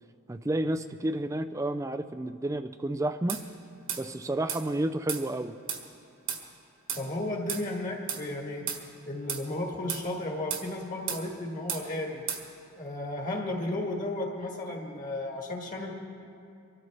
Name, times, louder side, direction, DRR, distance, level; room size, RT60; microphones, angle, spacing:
voice 1, 0.3-3.4 4.0-5.5, right 1 dB, 15° right, 10 dB, 0.3 m, -30 dB
sound 1, 3.3-3.4 3.9-4.0 4.5-4.6 5.1-5.2 5.7-5.8 6.3-6.4 6.9-7.0 7.5-7.6 8.1-8.2 8.7-8.8 9.3-9.5 9.9-10.1 10.5-10.7 11.1-11.2 11.7-11.8 12.3-12.4, right 8 dB, 55° right, 1.6 m, -33 dB
voice 2, 6.9-8.7 9.0-12.2 12.8-15.9, left 1 dB, 35° left, 0 dB, 1.6 m, -34 dB
25.0 x 13.0 x 3.3 m, 2.5 s
head